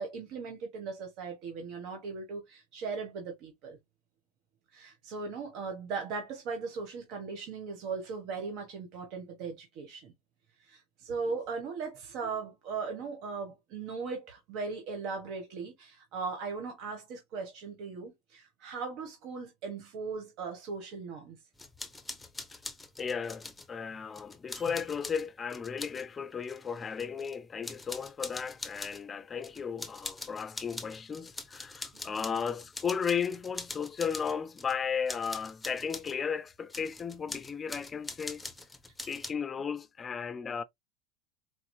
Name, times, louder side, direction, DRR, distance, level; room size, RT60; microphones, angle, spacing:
voice 1, 0.0-3.8 4.7-10.1 10.6-21.4, right 4 dB, 60° right, 1.3 m, -38 dB
sound 1, 21.6-23.7 24.2-26.1 26.4-27.4 27.6-29.0 29.4-34.8 35.1-36.2 36.7-39.3, left 2 dB, 10° left, 0.8 m, -43 dB
voice 2, 23.0-38.4 39.1-40.6, left 6 dB, 25° left, 0.5 m, -35 dB
4.1 x 2.9 x 2.3 m
hypercardioid pair, 95°, 0 cm